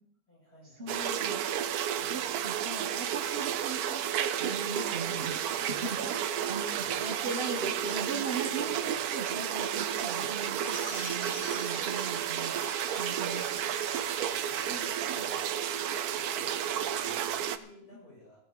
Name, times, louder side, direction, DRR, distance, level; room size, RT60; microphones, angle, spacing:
voice 1, 0.3-1.0 1.9-2.8 3.3-3.5 6.1-7.3 8.4-9.0 10.8-11.1 12.9-18.4, left 1 dB, 85° left, -6 dB, 8.0 m, -55 dB
voice 2, 0.8-1.8 2.1-12.7 13.0-13.4 14.7-14.9 15.2-15.3, right 4 dB, 45° right, 3 dB, 1.1 m, -39 dB
sound 1, 0.9-17.6, right 9 dB, 75° right, 1.2 m, -32 dB
sound 2, 10.6-17.0, left 5 dB, 45° left, 0.9 m, -48 dB
16.5 x 13.0 x 3.9 m, 0.68 s
omnidirectional pair, 1.6 m